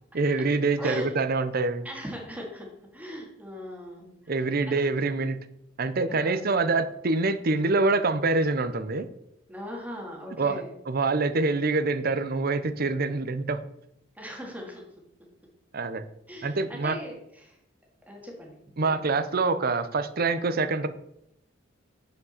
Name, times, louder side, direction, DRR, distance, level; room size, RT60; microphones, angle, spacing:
voice 1, 0.1-1.9 4.3-5.4 5.8-9.1 10.4-13.6 15.7-16.1 16.4-17.0 18.8-20.9, right 3 dB, 50° right, 11 dB, 0.7 m, -25 dB
voice 2, 0.8-1.1 1.8-2.7 2.9-4.8 6.1-6.4 9.5-10.8 14.1-14.8 16.3-17.6 18.1-18.6 18.9-19.1, equal, 10° right, -1 dB, 2.1 m, -39 dB
8.4 x 5.1 x 6.6 m, 0.79 s
head